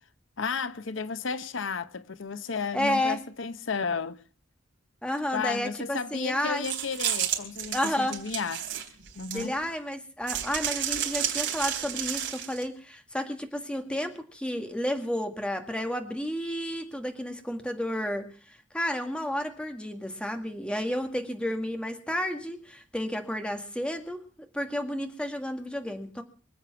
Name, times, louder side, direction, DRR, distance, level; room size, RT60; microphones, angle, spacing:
voice 1, 0.4-4.2 5.3-8.7 9.1-9.5, left 5 dB, 80° left, 0.8 m, -33 dB
voice 2, 2.7-3.2 5.0-6.7 7.7-8.2 9.3-24.2 24.5-26.2, left 1 dB, 5° left, 1.8 m, -31 dB
sound 1, 6.6-9.7 10.3-12.6, right 10 dB, 65° right, 3.6 m, -31 dB
25.0 x 8.5 x 5.9 m
head